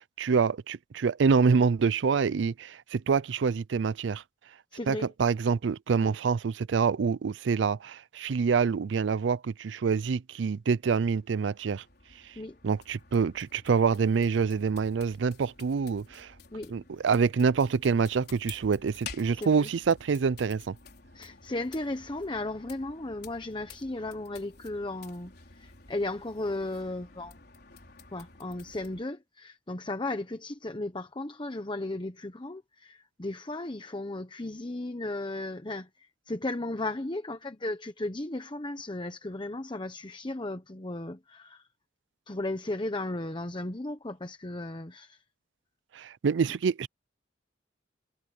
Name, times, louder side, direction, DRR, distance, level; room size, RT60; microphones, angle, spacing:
voice 1, 0.0-4.2 4.9-11.8 12.6-16.3 16.7-20.8 45.9-46.9, right 5 dB, 75° right, 0.4 m, -26 dB
voice 2, 4.7-5.1 6.0-6.1 12.4-12.6 16.5-16.7 19.3-19.7 21.1-27.3 28.1-41.6 42.3-45.2, left 2 dB, 25° left, 1.0 m, -35 dB
sound 1, 10.5-29.0, left 5 dB, 60° left, 4.6 m, -51 dB
head